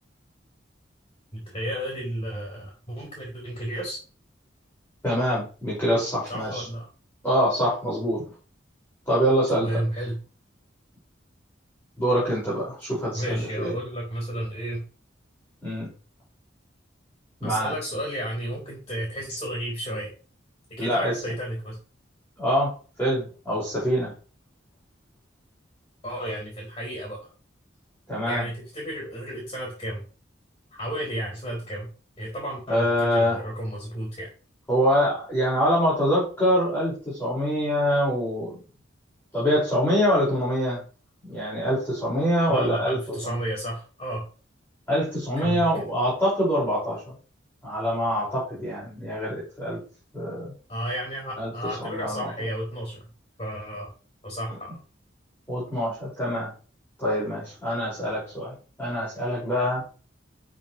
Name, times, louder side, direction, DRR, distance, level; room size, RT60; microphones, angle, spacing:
voice 1, 1.3-4.0 6.3-6.9 9.5-10.2 13.1-14.8 17.4-20.1 20.7-21.8 26.0-27.3 28.3-30.0 30.7-31.9 32.2-34.3 42.5-44.3 45.4-45.7 50.7-53.0 53.4-53.9 54.2-54.8, equal, 30° left, -3 dB, 4.2 m, -32 dB
voice 2, 5.0-6.7 7.2-8.2 9.1-9.7 12.0-13.7 15.6-15.9 17.4-17.7 20.8-21.2 22.4-22.7 23.0-24.1 28.1-28.4 32.7-33.4 34.7-38.6 39.3-40.8 41.2-43.4 44.9-47.1 47.6-49.8 50.1-50.5 51.4-51.5 51.8-52.3 55.5-56.5 57.0-59.8, equal, 10° left, -8 dB, 5.2 m, -25 dB
12.5 x 5.4 x 3.1 m, 0.36 s
head